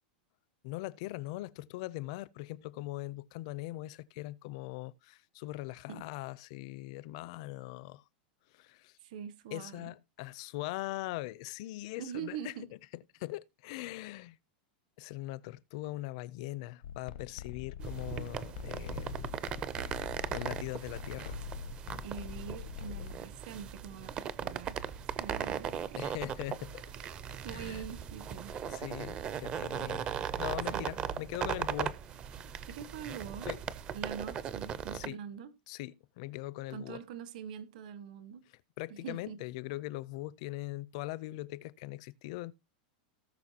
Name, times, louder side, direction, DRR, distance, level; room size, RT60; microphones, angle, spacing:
voice 1, 0.6-8.0 8.5-9.0 9.5-12.5 13.1-14.4 15.0-19.3 19.8-21.4 25.9-26.9 27.5-27.8 28.6-30.1 30.4-32.0 33.4-33.6 34.9-35.2 35.7-37.0 38.8-42.5, left 18 dB, 40° left, 0.5 m, -41 dB
voice 2, 9.0-9.9 11.9-12.7 22.0-24.8 25.1-26.0 26.9-28.5 30.7-31.0 32.7-33.5 33.9-35.5 36.7-38.4 38.9-39.4, right 8 dB, 55° right, 1.5 m, -44 dB
sound 1, 16.8-23.2, left 9 dB, 80° left, 0.8 m, -44 dB
sound 2, 17.8-35.1, right 8 dB, 20° right, 0.5 m, -38 dB
18.5 x 6.3 x 2.8 m
supercardioid pair, 175°, 5 cm